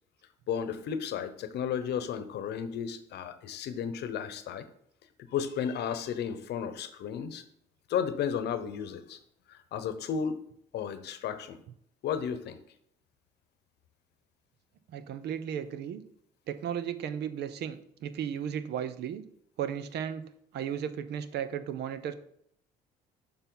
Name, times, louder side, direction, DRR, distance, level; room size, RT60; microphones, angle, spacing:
voice 1, 0.5-4.7 5.3-7.4 7.9-9.2 9.5-10.4 10.7-11.6 12.0-12.6, left 8 dB, 65° left, 11 dB, 0.9 m, -33 dB
voice 2, 14.9-16.0 16.5-19.2 19.6-20.2 20.5-22.1, right 9 dB, 65° right, 13 dB, 0.7 m, -35 dB
6.9 x 5.5 x 3.9 m, 0.69 s
supercardioid pair, 75°, 19 cm